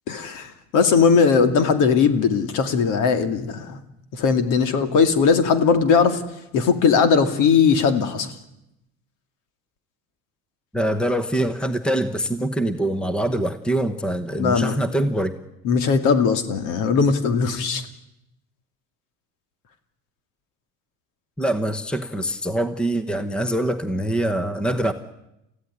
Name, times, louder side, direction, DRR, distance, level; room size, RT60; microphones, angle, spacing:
voice 1, 0.1-3.8 4.1-6.2 6.5-8.3 14.4-14.8 15.6-17.8, left 5 dB, 65° left, 9 dB, 2.5 m, -19 dB
voice 2, 10.7-15.3 21.4-24.9, right 1 dB, 5° left, 11 dB, 1.0 m, -24 dB
29.5 x 15.5 x 9.8 m, 0.87 s
cardioid pair, 170°, 34 cm